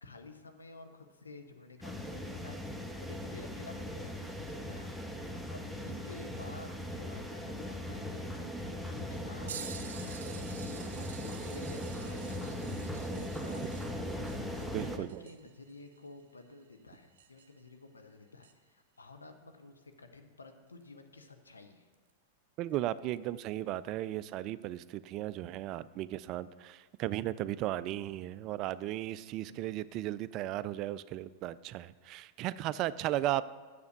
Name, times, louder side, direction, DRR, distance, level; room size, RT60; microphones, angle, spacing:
voice 1, 0.0-10.2 10.9-12.6 12.9-14.0 14.8-21.9 29.5-29.8 32.9-33.2, left 3 dB, 90° left, 6 dB, 0.8 m, -52 dB
sound 1, 1.8-15.0, equal, 5° left, 0.8 m, -39 dB
sound 2, 9.5-17.7 18.4-18.5 20.8-20.9 21.9-22.1 23.2-23.3, right 7 dB, 75° right, 0.6 m, -49 dB
voice 2, 14.7-15.2 22.6-33.4, right 14 dB, 45° right, 17 dB, 0.3 m, -35 dB
7.1 x 6.7 x 6.6 m, 1.4 s
hypercardioid pair, 95°, 0 cm